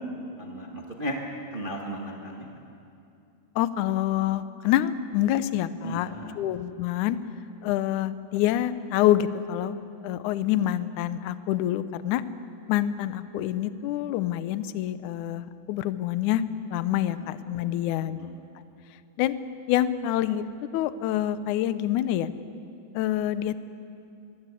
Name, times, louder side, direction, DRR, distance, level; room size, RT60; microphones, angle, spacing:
voice 1, 0.4-1.2 1.5-2.6 5.8-6.4 17.1-17.3 18.0-18.4, right 1 dB, 70° right, 1 dB, 0.5 m, -36 dB
voice 2, 3.6-7.2 7.6-9.8 10.0-12.2 12.7-16.4 16.7-18.2 19.2-19.4 19.7-20.5 20.7-22.3 22.9-23.6, left 12 dB, 75° left, 14 dB, 1.8 m, -26 dB
25.0 x 21.5 x 8.4 m, 2.6 s
omnidirectional pair, 4.4 m